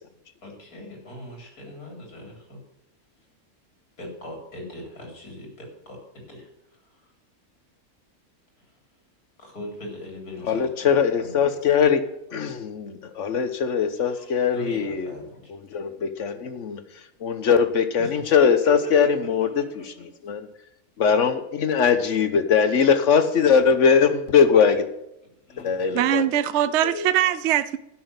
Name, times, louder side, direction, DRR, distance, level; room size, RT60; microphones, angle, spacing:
voice 1, 0.4-2.6 4.0-7.1 8.6-8.7 9.4-11.5 14.0-15.5 18.0-19.1 19.6-19.9 25.3-26.3, left 1 dB, 80° left, 1 dB, 4.2 m, -40 dB
voice 2, 10.5-12.0 12.3-15.1 15.7-16.8 17.2-19.8 20.2-20.5 21.0-24.9 25.6-26.2 26.8-27.1, left 6 dB, 55° left, 10 dB, 1.3 m, -21 dB
voice 3, 25.9-27.8, right 11 dB, 65° right, 14 dB, 0.7 m, -22 dB
11.5 x 6.2 x 8.0 m, 0.83 s
omnidirectional pair, 1.6 m